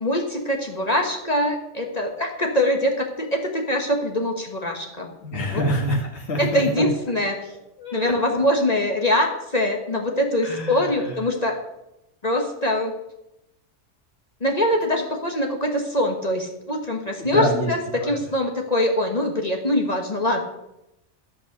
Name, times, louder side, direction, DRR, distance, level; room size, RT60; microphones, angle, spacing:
voice 1, 0.0-5.1 5.5-5.6 6.4-7.4 7.9-11.6 12.2-12.9 14.4-20.4, left 1 dB, 35° left, 1 dB, 1.4 m, -23 dB
voice 2, 5.2-6.8 7.8-8.1 10.4-11.2 17.2-17.7 18.0-18.2 20.3-20.4, equal, 60° left, 1 dB, 2.1 m, -26 dB
10.5 x 8.5 x 6.6 m, 0.87 s
omnidirectional pair, 1.3 m